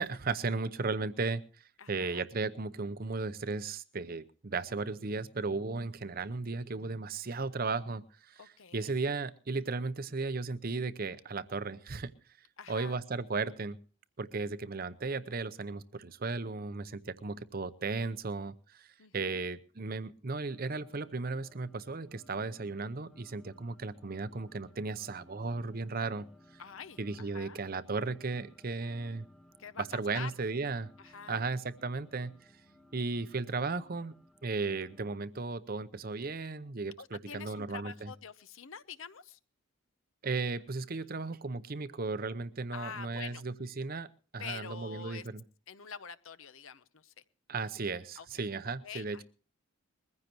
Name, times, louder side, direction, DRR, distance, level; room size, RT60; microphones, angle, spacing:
voice 1, 0.0-8.4 8.7-12.1 12.7-13.8 14.2-26.3 27.0-29.3 29.8-30.9 31.3-32.3 32.9-34.1 34.4-38.1 40.2-45.4 47.5-49.2, right 3 dB, 40° right, 15 dB, 0.7 m, -35 dB
voice 2, 1.8-2.2 8.4-8.9 12.6-13.0 19.0-19.4 26.6-27.6 29.6-29.8 30.1-30.3 31.0-31.4 37.0-39.4 42.7-43.4 44.4-45.3 45.7-47.2 48.2-48.3 48.8-49.2, left 6 dB, 65° left, 14 dB, 0.8 m, -46 dB
sound 1, 20.5-35.2, left 1 dB, ahead, 1.3 m, -61 dB
21.5 x 15.0 x 3.0 m, 0.38 s
head